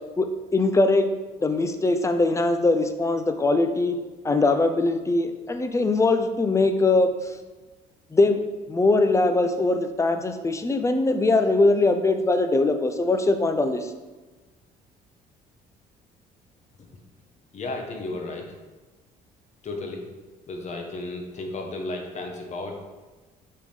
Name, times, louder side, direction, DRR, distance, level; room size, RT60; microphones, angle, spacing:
voice 1, 0.2-1.1 1.4-4.0 4.2-7.1 8.1-8.4 8.7-13.9, left 2 dB, 15° left, 8 dB, 0.6 m, -21 dB
voice 2, 17.5-18.5 19.6-20.1 20.5-22.7, left 2 dB, 45° left, 2 dB, 1.3 m, -33 dB
6.6 x 3.8 x 5.0 m, 1.2 s
cardioid pair, 110°, 17 cm